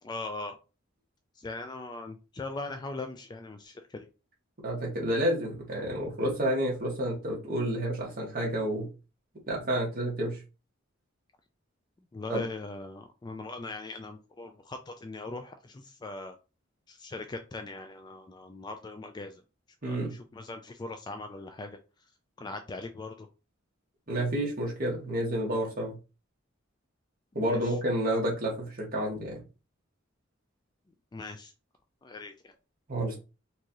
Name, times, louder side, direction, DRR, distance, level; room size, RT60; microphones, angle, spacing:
voice 1, 0.0-0.6 1.4-4.1 12.1-16.3 16.9-19.4 19.8-21.8 22.4-23.3 27.4-27.8 31.1-31.5 32.0-32.5, left 2 dB, 20° left, 6 dB, 0.3 m, -40 dB
voice 2, 4.6-8.9 9.5-10.4 12.3-12.4 19.8-20.1 24.1-26.0 27.3-29.4 32.9-33.2, right 1 dB, 45° right, -2 dB, 1.7 m, -30 dB
4.5 x 2.7 x 3.0 m, 0.31 s
head